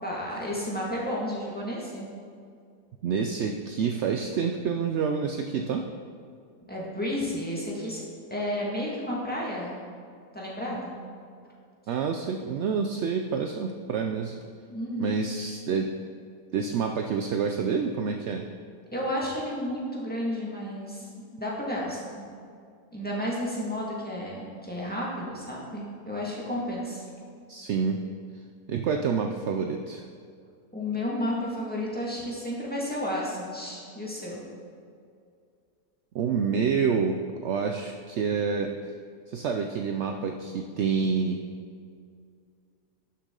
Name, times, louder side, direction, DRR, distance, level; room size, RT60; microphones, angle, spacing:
voice 1, 0.0-2.1 6.7-8.0 8.3-9.8 10.3-10.9 14.7-15.2 18.9-22.3 22.9-27.1 30.7-34.4, left 1 dB, 5° left, -5 dB, 1.7 m, -32 dB
voice 2, 3.0-5.9 11.9-14.4 15.0-15.9 16.5-18.5 27.5-28.0 28.7-30.1 36.1-38.7 39.3-41.4, right 6 dB, 70° right, 4 dB, 0.6 m, -28 dB
11.5 x 6.8 x 3.8 m, 2.3 s
omnidirectional pair, 1.7 m